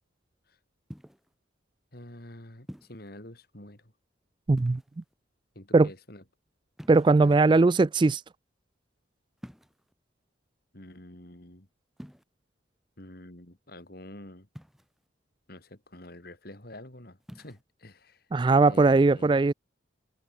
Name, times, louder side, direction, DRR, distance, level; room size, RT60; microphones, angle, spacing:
sound 1, 0.9-1.3 2.7-3.1 4.5-5.2 6.8-7.5 9.4-9.9 12.0-12.2 14.6-15.1 17.2-17.6, equal, ahead, 2.6 m, -47 dB
voice 1, 1.9-3.9 5.5-6.2 7.2-7.6 10.7-11.7 13.0-14.5 15.5-18.3 18.7-19.3, left 1 dB, 50° left, 3.3 m, -47 dB
voice 2, 4.5-4.8 5.7-5.9 6.9-8.2 18.3-19.5, right 3 dB, 25° right, 0.3 m, -20 dB
head